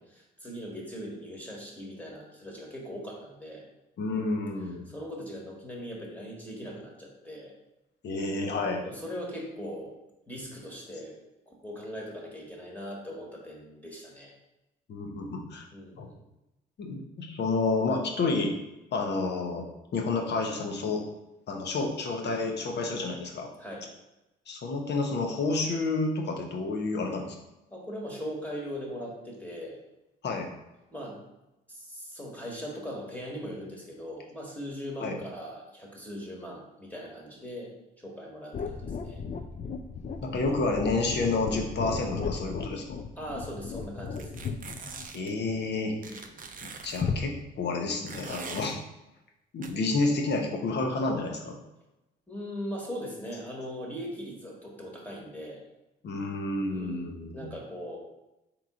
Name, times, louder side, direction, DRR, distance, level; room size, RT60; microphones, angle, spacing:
voice 1, 0.1-3.6 4.9-7.5 8.8-10.0 10.3-11.2 11.5-14.3 15.7-16.2 23.6-23.8 27.7-29.8 30.9-31.2 31.7-39.2 43.2-44.5 46.1-46.3 52.3-55.6 56.7-58.0, equal, 5° left, -3 dB, 1.4 m, -40 dB
voice 2, 4.0-4.9 8.0-8.8 14.9-15.6 16.0-16.1 16.8-18.5 18.9-19.7 19.9-21.0 21.5-23.5 24.5-27.3 30.2-30.5 35.0-35.2 40.2-43.0 45.1-46.2 46.8-48.8 49.5-51.6 56.0-57.4, left 3 dB, 55° left, 2 dB, 0.9 m, -30 dB
sound 1, 38.5-46.1 47.0-47.2, left 5 dB, 35° left, 0.4 m, -35 dB
sound 2, 44.2-45.3 46.0-47.0 48.1-48.7 49.6-49.7, right 5 dB, 40° right, 0.5 m, -42 dB
3.7 x 3.0 x 3.7 m, 0.95 s
supercardioid pair, 60°, 21 cm